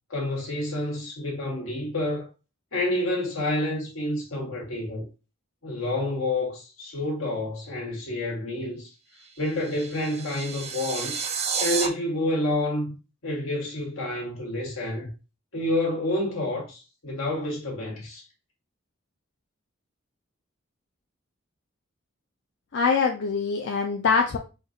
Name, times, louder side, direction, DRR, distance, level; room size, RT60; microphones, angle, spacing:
voice 1, 0.1-2.3 2.7-5.0 5.6-8.9 9.4-11.1 11.6-12.9 13.2-15.1 15.5-18.2, left 1 dB, 85° left, 1.5 m, -29 dB
sound 1, 9.2-11.9, right 6 dB, 30° right, 0.4 m, -31 dB
voice 2, 22.7-24.4, left 5 dB, 65° left, 0.4 m, -23 dB
4.4 x 2.4 x 2.6 m
head